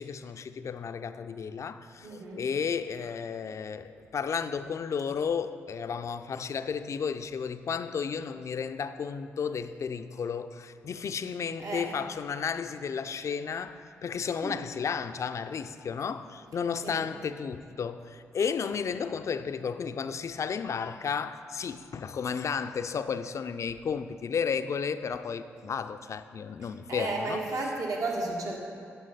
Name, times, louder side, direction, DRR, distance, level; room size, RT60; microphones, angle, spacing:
voice 1, 0.0-27.4, left 6 dB, 55° left, 0.4 m, -33 dB
voice 2, 2.0-2.4 11.6-11.9 14.4-14.6 16.8-17.0 26.9-28.6, right 2 dB, 65° right, 1.5 m, -33 dB
9.1 x 7.1 x 4.1 m
hypercardioid pair, 40°, 6 cm